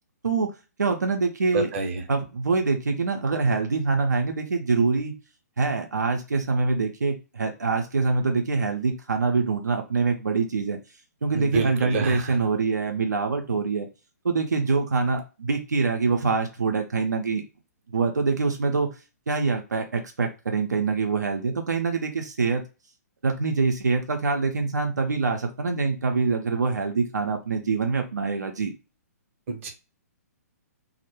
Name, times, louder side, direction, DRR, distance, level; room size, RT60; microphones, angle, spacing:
voice 1, 0.8-1.7 2.1-5.1 5.6-10.8 11.2-13.9 14.2-17.4 17.9-18.9 19.3-22.6 23.2-28.7, right 4 dB, 90° right, 3 dB, 0.4 m, -25 dB
voice 2, 1.5-2.0 11.3-12.4 29.5-29.7, right 4 dB, 50° right, 4 dB, 0.7 m, -28 dB
2.1 x 2.0 x 2.9 m, 0.31 s
hypercardioid pair, 130°, 9 cm